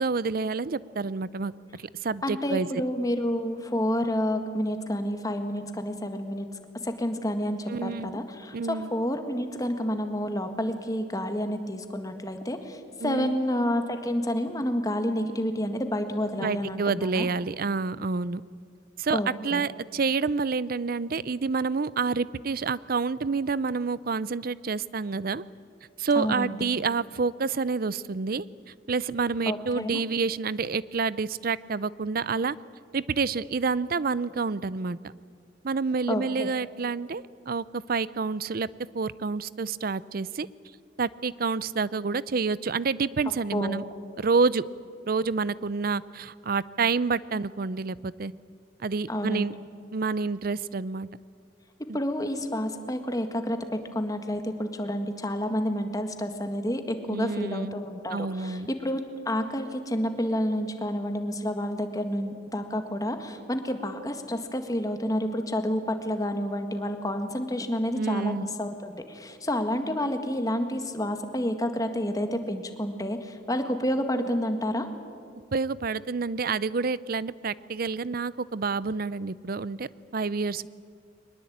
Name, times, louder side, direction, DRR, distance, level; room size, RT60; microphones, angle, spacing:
voice 1, 0.0-1.5 1.8-2.7 7.7-8.2 8.5-8.9 13.0-13.4 16.4-18.4 19.0-25.4 26.0-28.5 28.9-32.6 32.9-35.1 35.6-38.7 38.9-40.5 41.0-43.8 44.2-44.6 45.1-48.3 48.8-49.5 49.9-51.1 51.9-52.0 57.1-57.8 58.1-58.7 67.9-68.5 75.5-80.7, right 4 dB, 50° right, 19 dB, 0.5 m, -28 dB
voice 2, 2.2-6.5 6.8-17.3 19.1-19.7 26.1-26.7 29.5-30.0 36.1-36.5 43.5-43.8 49.1-49.6 51.9-74.9, equal, 20° left, 7 dB, 1.7 m, -29 dB
22.5 x 20.5 x 8.7 m, 2.2 s
head